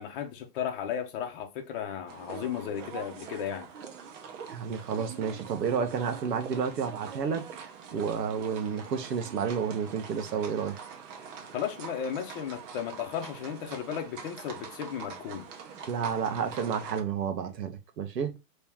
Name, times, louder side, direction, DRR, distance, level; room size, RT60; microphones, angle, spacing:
voice 1, 0.0-3.7 11.5-15.5, left 8 dB, 35° left, 0.8 m, -35 dB
sound 1, 2.1-17.0, right 6 dB, 50° right, 1.0 m, -44 dB
voice 2, 4.5-7.4 7.9-10.8 15.9-18.4, right 6 dB, 80° right, 1.1 m, -31 dB
3.0 x 2.9 x 3.5 m
hypercardioid pair, 145°, 49 cm